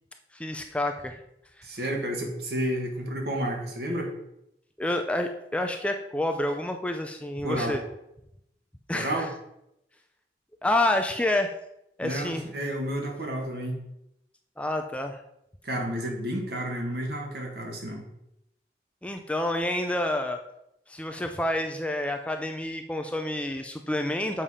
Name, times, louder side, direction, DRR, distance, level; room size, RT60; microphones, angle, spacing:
voice 1, 0.3-1.2 4.8-7.8 8.9-9.3 10.6-11.5 12.0-12.4 14.6-15.2 19.0-20.4 20.9-24.4, left 1 dB, 5° left, 5 dB, 0.4 m, -28 dB
voice 2, 1.6-4.1 7.4-7.8 8.9-9.3 12.0-13.8 15.6-18.1, right 1 dB, 65° right, 1 dB, 1.7 m, -31 dB
7.3 x 5.6 x 4.9 m, 0.83 s
head